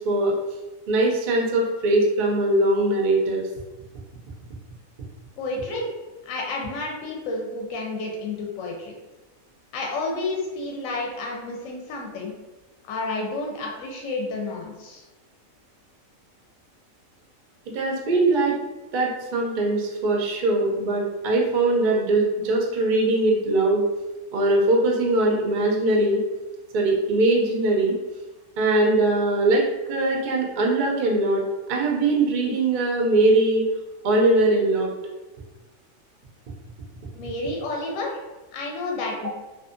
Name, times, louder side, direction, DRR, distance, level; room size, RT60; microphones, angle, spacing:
voice 1, 0.9-3.4 17.7-18.5 18.9-23.8 24.3-26.2 26.7-28.0 28.6-31.4 31.7-33.6 34.0-34.9, right 2 dB, 75° right, -1 dB, 0.4 m, -21 dB
voice 2, 5.4-5.9 6.2-8.9 9.7-12.3 12.8-15.0 37.1-38.2 38.5-39.3, left 2 dB, 70° left, -1 dB, 0.9 m, -30 dB
2.6 x 2.4 x 2.5 m, 1.1 s
omnidirectional pair, 1.5 m